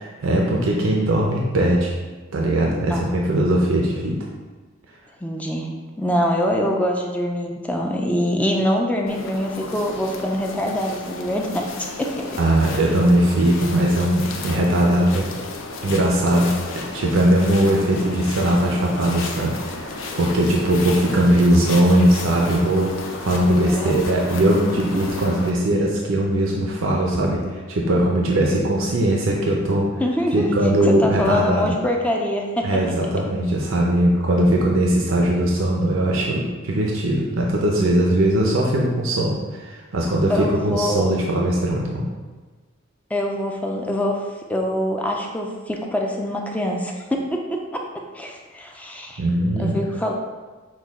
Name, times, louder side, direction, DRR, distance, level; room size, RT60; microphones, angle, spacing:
voice 1, 0.2-1.9 2.3-4.2 12.4-15.3 15.8-16.5 16.9-29.9 30.3-31.7 32.6-42.0 49.2-49.7, right 1 dB, 85° right, -2 dB, 0.6 m, -20 dB
voice 2, 5.2-5.7 6.0-12.3 23.6-24.0 24.9-25.1 30.0-30.5 30.8-32.7 40.3-41.1 43.1-44.2 44.5-47.9 48.1-49.2 49.6-50.1, left 1 dB, 5° left, 0 dB, 0.3 m, -24 dB
sound 1, 9.1-25.5, left 3 dB, 75° left, 0.5 m, -33 dB
6.3 x 2.2 x 3.5 m, 1.3 s
head